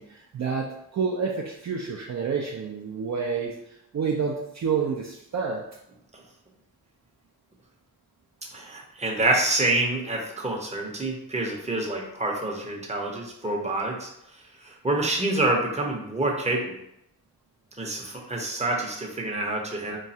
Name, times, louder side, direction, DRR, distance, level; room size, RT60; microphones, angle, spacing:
voice 1, 0.0-5.6, right 5 dB, 45° right, -1 dB, 0.5 m, -29 dB
voice 2, 8.5-14.1 14.6-16.8 17.8-20.0, right 2 dB, 20° right, 0 dB, 0.7 m, -27 dB
3.1 x 2.3 x 2.7 m, 0.78 s
cardioid pair, 50°, 38 cm